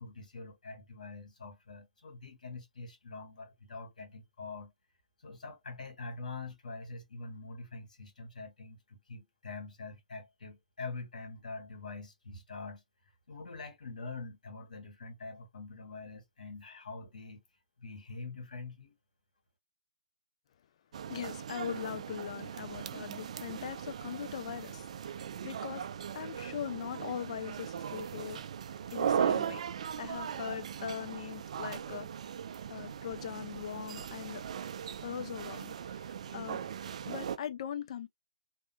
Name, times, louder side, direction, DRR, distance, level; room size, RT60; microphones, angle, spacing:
voice 1, 0.0-4.7 5.2-12.8 13.3-17.4 17.8-18.9, left 3 dB, 70° left, 1.8 m, -45 dB
sound 1, 20.9-37.4, right 8 dB, 55° right, 0.4 m, -38 dB
voice 2, 21.1-25.1 25.4-25.8 26.1-28.4 28.9-29.6 30.0-32.1 32.7-34.4 35.0-36.6 37.0-38.1, left 9 dB, 50° left, 0.5 m, -40 dB
3.6 x 2.2 x 2.2 m
figure-of-eight pair, 135°, 4 cm